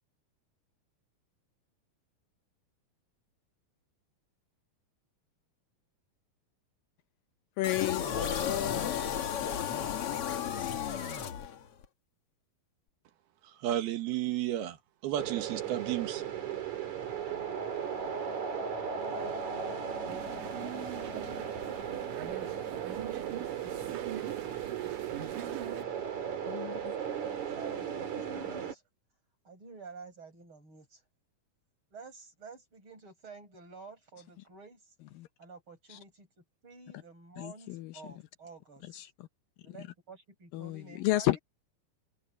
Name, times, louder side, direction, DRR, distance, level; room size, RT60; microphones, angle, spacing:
voice 1, 7.6-9.2 26.5-27.0 35.2-35.3 35.9-36.0 37.4-38.0 38.8-39.3 40.5-41.4, left 16 dB, 75° left, 2.3 m, -33 dB
sound 1, 7.6-11.9, left 8 dB, 55° left, 1.8 m, -33 dB
voice 2, 13.4-14.8 15.0-16.2, right 12 dB, 90° right, 3.5 m, -32 dB
sound 2, 15.2-28.7, right 7 dB, 50° right, 4.3 m, -36 dB
sound 3, 20.1-25.8, right 12 dB, 70° right, 2.4 m, -43 dB
voice 3, 27.5-28.8 29.5-31.0 31.9-34.9 35.4-38.9 39.6-41.4, right 4 dB, 30° right, 8.7 m, -50 dB
omnidirectional pair, 4.3 m